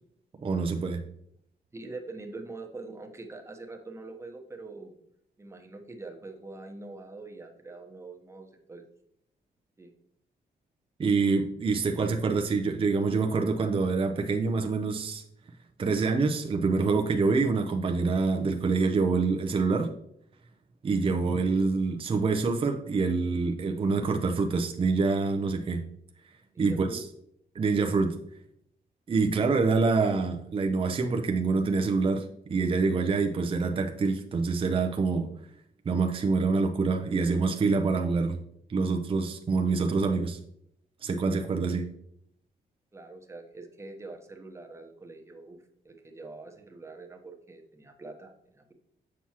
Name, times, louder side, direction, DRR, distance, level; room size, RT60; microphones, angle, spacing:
voice 1, 0.4-1.0 11.0-15.2 15.8-19.9 20.8-25.8 26.6-27.0 27.5-28.2 29.1-35.3 35.9-38.4 38.7-40.4 41.0-41.8, right 4 dB, 30° right, 4 dB, 0.6 m, -26 dB
voice 2, 1.7-4.9 5.4-8.8 9.8-9.9 26.5-27.0 41.7-41.9 42.9-45.6 45.8-48.7, right 3 dB, 15° right, 3 dB, 0.9 m, -44 dB
7.3 x 5.9 x 2.9 m, 0.73 s
cardioid pair, 125°, 17 cm